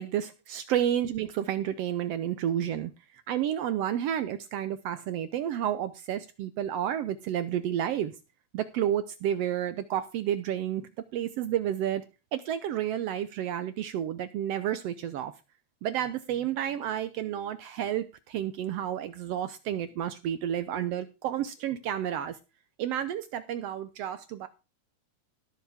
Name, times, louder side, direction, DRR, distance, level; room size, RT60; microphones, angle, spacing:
voice 1, 0.0-2.9 3.3-8.1 8.5-12.0 12.3-15.3 15.8-22.4 22.8-24.5, right 10 dB, 75° right, 1.5 m, -31 dB
18.0 x 7.1 x 3.4 m
omnidirectional pair, 3.3 m